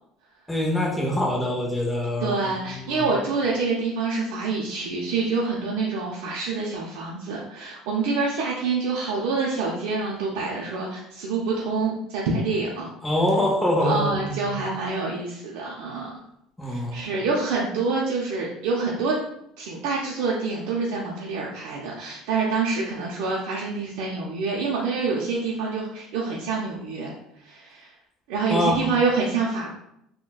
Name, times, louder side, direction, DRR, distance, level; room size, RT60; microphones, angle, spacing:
voice 1, 0.5-3.1 13.0-14.6 16.6-17.1 28.5-28.9, left 1 dB, 5° left, -3 dB, 0.6 m, -25 dB
voice 2, 2.2-12.9 13.8-16.2 16.6-19.2 19.6-27.9 28.3-29.7, right 4 dB, 85° right, -3 dB, 0.4 m, -27 dB
3.8 x 2.1 x 2.2 m, 0.78 s
cardioid pair, 135°, 0 cm